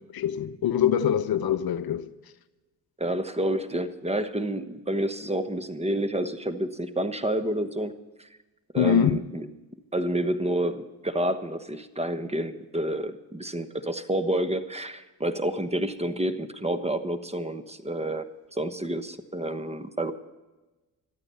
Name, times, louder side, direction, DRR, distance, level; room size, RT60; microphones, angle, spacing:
voice 1, 0.1-2.1 8.8-9.2, left 9 dB, 55° left, 0.8 m, -24 dB
voice 2, 3.0-8.3 8.7-9.5 9.9-18.3 18.5-20.1, right 1 dB, 15° right, 1.1 m, -29 dB
14.0 x 13.0 x 5.6 m
supercardioid pair, 75°, 43 cm